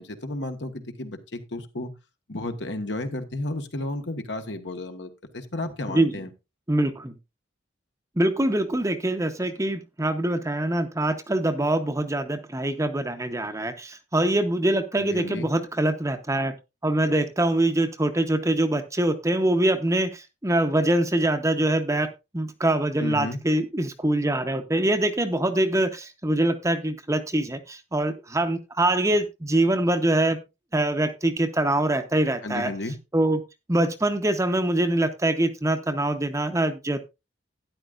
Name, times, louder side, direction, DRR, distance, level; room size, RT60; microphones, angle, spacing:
voice 1, 0.0-1.9 2.3-6.3 14.9-15.5 23.0-23.4 32.4-33.0, left 1 dB, 65° left, 6 dB, 1.4 m, -33 dB
voice 2, 6.7-7.1 8.2-16.5 16.8-30.4 30.7-32.7 33.1-33.4 33.7-37.0, right 1 dB, 15° right, 7 dB, 0.9 m, -24 dB
12.5 x 10.0 x 2.5 m, 0.25 s
head